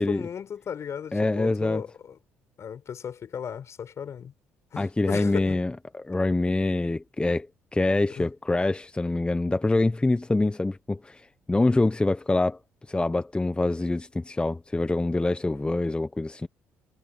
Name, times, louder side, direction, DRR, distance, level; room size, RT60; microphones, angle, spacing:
voice 1, 0.0-2.2 2.6-4.3 4.7-5.6 8.1-8.3, left 8 dB, 55° left, 6.1 m, -36 dB
voice 2, 1.1-1.8 4.8-5.7 6.0-7.5 7.7-12.6 12.9-16.5, left 2 dB, 15° left, 1.2 m, -25 dB
hypercardioid pair, 55°, 6 cm